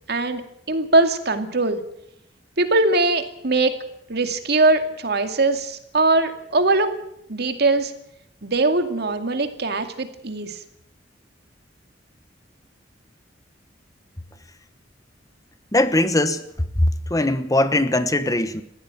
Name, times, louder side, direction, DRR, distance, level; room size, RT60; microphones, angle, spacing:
voice 1, 0.1-0.4 0.7-1.8 2.6-3.7 4.1-6.9 7.3-7.9 8.4-10.6, right 2 dB, 60° right, 7 dB, 2.3 m, -21 dB
voice 2, 15.7-16.4 16.8-18.6, left 1 dB, 20° left, 11 dB, 1.2 m, -20 dB
20.0 x 15.5 x 8.9 m, 0.76 s
head